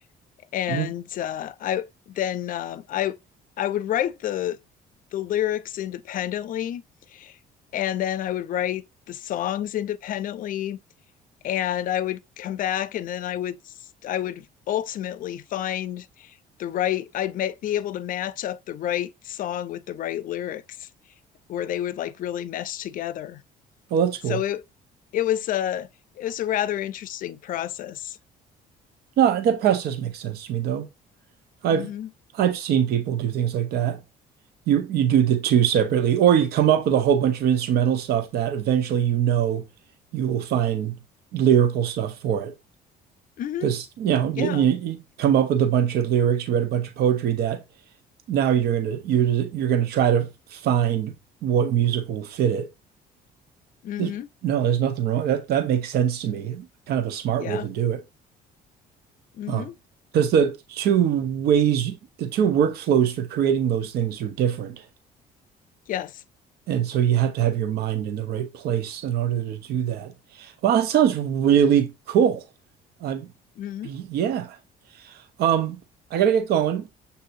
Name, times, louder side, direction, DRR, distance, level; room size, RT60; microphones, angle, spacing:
voice 1, 0.5-3.2 3.6-4.6 5.1-6.8 7.1-7.4 7.7-10.8 11.4-13.7 14.0-16.3 16.6-20.9 21.5-23.4 24.3-24.6 25.1-25.9 26.2-28.2 31.7-32.1 43.4-43.7 44.4-44.7 53.8-54.3 57.4-57.7 59.3-59.8 65.9-66.2 73.6-73.9, left 11 dB, 55° left, 0.5 m, -29 dB
voice 2, 23.9-24.4 29.2-30.9 31.6-31.9 32.3-34.0 34.7-39.6 40.1-40.9 41.3-42.5 43.6-47.6 48.3-51.1 51.4-52.7 54.0-54.1 54.4-58.0 59.5-59.7 60.1-64.8 66.7-72.4 73.0-73.3 73.8-74.6 75.0-75.8 76.1-76.9, right 9 dB, 70° right, 0.8 m, -22 dB
6.9 x 2.7 x 2.5 m
cardioid pair, 110°, 17 cm